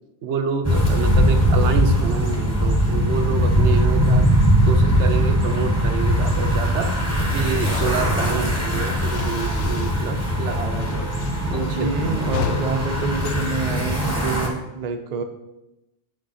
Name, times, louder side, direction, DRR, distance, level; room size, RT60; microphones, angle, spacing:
voice 1, 0.2-4.3 4.7-11.1 11.5-12.7, right 5 dB, 70° right, 7 dB, 1.0 m, -28 dB
sound 1, 0.6-14.5, equal, 15° left, 1.2 m, -20 dB
sound 2, 7.5-10.2 10.5-14.3, left 8 dB, 90° left, 0.9 m, -35 dB
voice 2, 11.7-15.2, right 4 dB, 40° right, 4 dB, 0.7 m, -27 dB
6.7 x 6.5 x 4.2 m, 0.94 s
omnidirectional pair, 1.2 m